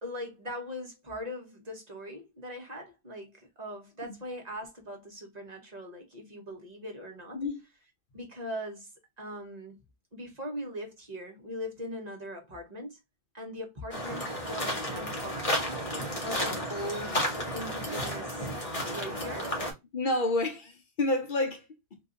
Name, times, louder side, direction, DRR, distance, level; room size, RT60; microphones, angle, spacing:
voice 1, 0.0-7.4 8.1-8.9 9.2-9.8 10.1-13.0 13.3-15.5 16.2-18.5 18.8-19.6, equal, 40° right, 1.1 m, -40 dB
sound 1, 13.9-19.7, equal, 35° left, 1.2 m, -32 dB
voice 2, 19.9-22.0, left 2 dB, 55° left, 0.8 m, -29 dB
3.7 x 2.6 x 2.5 m
omnidirectional pair, 1.1 m